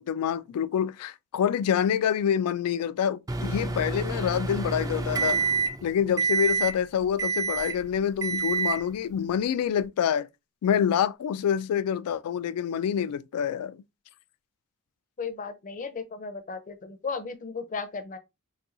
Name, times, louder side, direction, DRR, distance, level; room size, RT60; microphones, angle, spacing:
voice 1, 0.0-5.4 5.8-10.3 10.6-13.8, left 8 dB, 90° left, 0.3 m, -26 dB
Microwave oven, 3.3-5.8 6.2-6.7 7.2-7.8 8.2-8.8, right 4 dB, 15° right, 0.3 m, -27 dB
voice 2, 15.2-18.2, left 5 dB, 35° left, 0.5 m, -35 dB
4.0 x 2.3 x 2.5 m
head